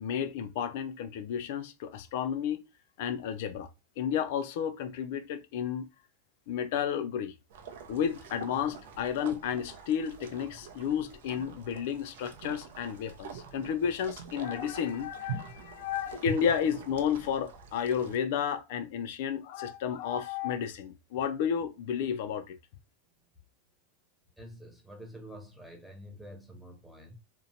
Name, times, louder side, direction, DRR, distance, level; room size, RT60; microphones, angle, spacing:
voice 1, 0.0-2.6 3.0-3.7 4.0-5.9 6.5-7.3 7.9-22.6, left 8 dB, 60° left, 0.3 m, -32 dB
sound 1, 7.5-18.2, right 4 dB, 70° right, 0.5 m, -45 dB
voice 2, 24.4-27.2, equal, ahead, 0.5 m, -47 dB
2.8 x 2.1 x 2.6 m
supercardioid pair, 160°, 0 cm